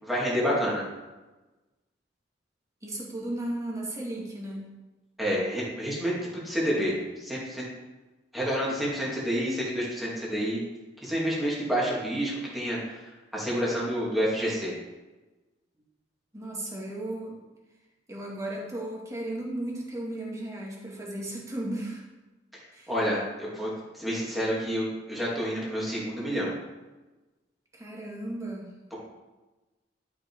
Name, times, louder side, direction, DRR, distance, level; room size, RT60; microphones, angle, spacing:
voice 1, 0.0-0.9 5.2-7.7 8.3-10.6 11.0-13.0 13.3-14.7 22.9-26.5 28.9-29.0, equal, ahead, -6 dB, 2.4 m, -29 dB
voice 2, 2.8-4.7 16.3-17.4 18.1-22.0 22.7-22.9 27.7-28.7, right 1 dB, 15° right, -3 dB, 2.3 m, -35 dB
12.0 x 6.0 x 4.7 m, 1.1 s
head